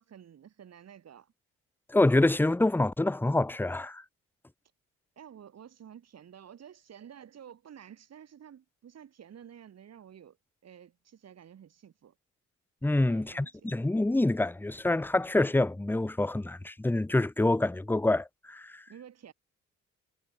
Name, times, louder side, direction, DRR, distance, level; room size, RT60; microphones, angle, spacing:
voice 1, 0.0-1.3 5.2-10.4 10.6-12.1 13.0-13.8 18.9-19.3, right 9 dB, 55° right, 4.4 m, -51 dB
voice 2, 1.9-4.0 12.8-18.8, left 2 dB, 5° left, 0.8 m, -26 dB
cardioid pair, 90°, 30 cm